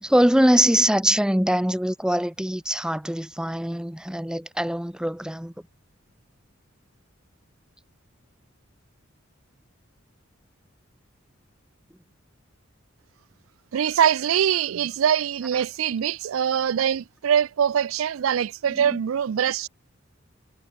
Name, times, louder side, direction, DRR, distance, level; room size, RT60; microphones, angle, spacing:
voice 1, 0.0-5.5 18.7-19.0, right 1 dB, 5° right, 0.8 m, -23 dB
voice 2, 13.7-19.7, right 8 dB, 85° right, 0.4 m, -23 dB
head